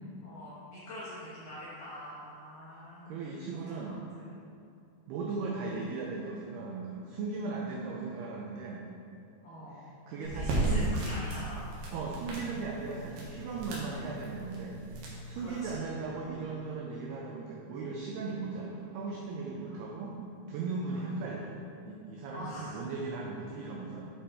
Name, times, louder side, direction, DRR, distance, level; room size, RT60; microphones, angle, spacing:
voice 1, 0.2-3.1 3.8-4.0 9.4-9.8 10.2-11.6 15.4-15.7 19.6-19.8 20.8-21.1 22.3-22.8, left 1 dB, 70° left, -10 dB, 2.0 m, -44 dB
voice 2, 2.7-4.0 5.1-8.9 9.7-10.9 11.9-14.8 15.3-20.2 20.5-21.6 21.9-24.1, right 4 dB, 90° right, -2 dB, 2.2 m, -37 dB
sound 1, 10.2-15.7, right 2 dB, 65° right, 2.5 m, -35 dB
8.6 x 5.2 x 4.3 m, 2.6 s
omnidirectional pair, 5.5 m